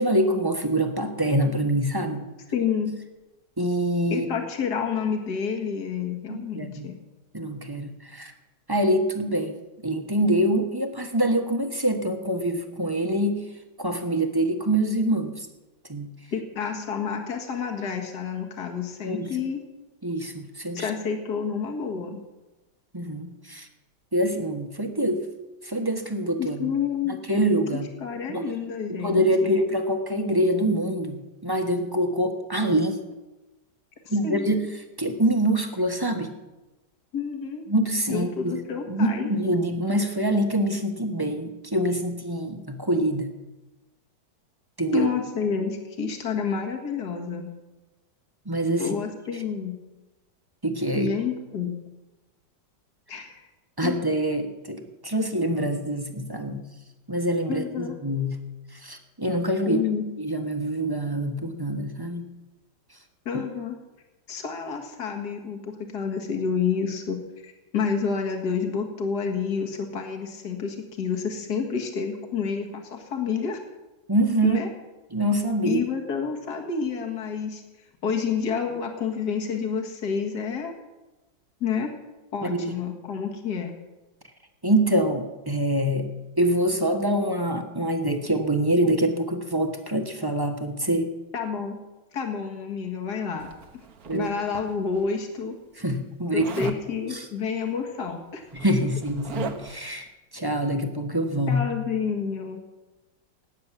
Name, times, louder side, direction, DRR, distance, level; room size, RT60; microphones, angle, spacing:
voice 1, 0.0-2.2 3.6-4.3 6.3-6.9 7.3-8.3 8.7-9.5 9.8-13.4 13.8-15.3 15.9-16.1 19.0-19.3 20.0-20.9 22.9-23.7 24.1-25.2 25.6-26.7 27.1-27.9 28.3-28.4 28.9-33.0 34.1-34.7 35.0-36.3 37.7-38.6 38.9-43.3 44.8-45.1 48.5-48.9 50.6-51.1 53.8-56.6 57.1-58.4 58.8-59.8 60.2-62.3 74.1-74.6 75.1-75.8 82.4-82.8 84.6-86.1 86.4-91.1 94.1-94.3 95.8-96.7 97.1-97.2 98.5-100.1 100.3-101.6, right 1 dB, 15° right, 5 dB, 1.0 m, -25 dB
voice 2, 2.5-2.9 4.1-7.0 16.3-19.6 20.7-22.2 26.4-27.2 27.7-29.5 34.2-34.5 37.1-37.7 38.1-39.3 44.9-47.5 48.8-49.8 51.0-51.7 53.1-53.4 53.8-53.9 57.5-57.9 59.7-60.0 63.3-63.8 64.3-73.6 74.4-74.7 75.6-77.6 78.0-80.7 81.6-81.9 82.3-83.7 91.3-91.8 92.1-93.5 94.1-95.6 96.3-98.4 101.5-102.6, left 6 dB, 65° left, 2 dB, 2.3 m, -29 dB
Zipper (clothing), 93.4-95.0 96.4-96.8 98.0-98.1 98.4-99.9, right 5 dB, 60° right, 1.6 m, -38 dB
18.0 x 9.6 x 7.5 m, 1.1 s
omnidirectional pair, 1.9 m